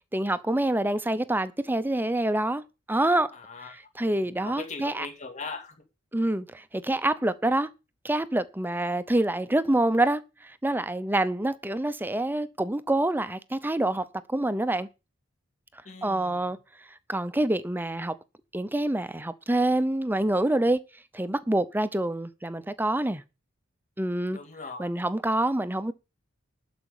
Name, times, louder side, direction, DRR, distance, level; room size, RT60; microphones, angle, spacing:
voice 1, 0.1-2.6 2.9-3.3 4.0-5.1 6.1-7.7 8.0-14.9 16.0-16.6 17.1-18.2 18.5-20.8 21.1-23.2 24.0-24.4 24.8-25.9, right 1 dB, 10° right, 0.7 m, -26 dB
voice 2, 3.3-3.8 4.4-5.8 15.8-16.5 24.3-24.9, left 4 dB, 35° left, 2.3 m, -40 dB
12.0 x 5.1 x 8.5 m
head